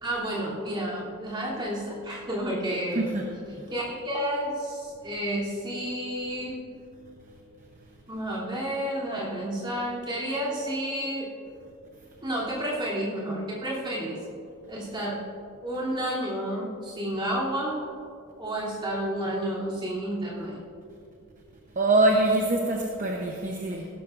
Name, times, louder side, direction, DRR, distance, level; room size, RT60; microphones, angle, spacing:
voice 1, 0.0-3.2 3.7-6.6 8.1-11.3 12.2-14.2 14.7-15.2 15.6-17.8 18.4-20.6, right 1 dB, 20° right, -7 dB, 3.1 m, -30 dB
voice 2, 21.8-23.9, right 2 dB, 35° right, 0 dB, 0.9 m, -24 dB
15.5 x 13.0 x 2.6 m, 2.5 s
head